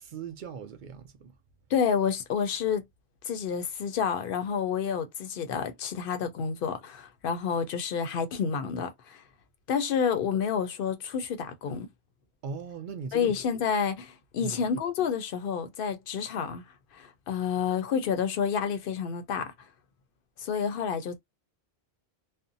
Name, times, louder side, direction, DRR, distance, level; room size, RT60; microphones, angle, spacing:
voice 1, 0.0-1.3 12.4-13.3 14.4-14.6, right 6 dB, 60° right, 0.6 m, -39 dB
voice 2, 1.7-2.8 3.2-9.2 9.7-11.9 13.1-16.6 16.9-19.5 20.4-21.2, left 7 dB, 60° left, 0.7 m, -29 dB
2.5 x 2.1 x 2.6 m
omnidirectional pair, 1.1 m